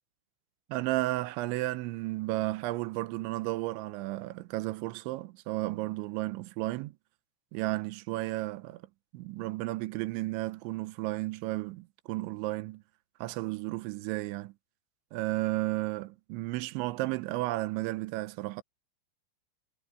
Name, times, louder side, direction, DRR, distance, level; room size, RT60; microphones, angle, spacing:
voice 1, 0.7-6.9 7.5-8.8 9.1-12.8 13.2-14.5 15.1-18.6, right 18 dB, 90° right, 3.1 m, -33 dB
omnidirectional pair, 5.2 m